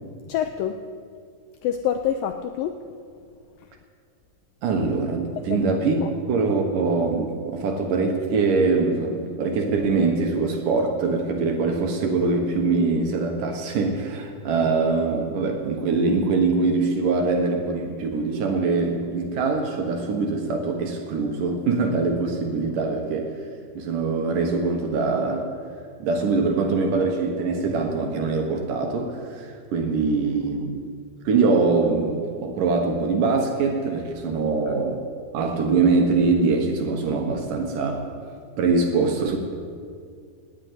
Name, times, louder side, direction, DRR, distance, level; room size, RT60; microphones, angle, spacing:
voice 1, 0.3-0.8 1.6-2.8 3.6-3.7 5.4-5.6 6.0-6.1 34.7-34.8, left 9 dB, 80° left, 7 dB, 2.0 m, -27 dB
voice 2, 4.6-23.3 23.8-25.5 26.0-30.8 31.3-35.0 35.3-38.1 38.6-39.4, right 4 dB, 65° right, 3 dB, 2.5 m, -23 dB
18.0 x 6.8 x 9.1 m, 2.2 s
omnidirectional pair, 4.6 m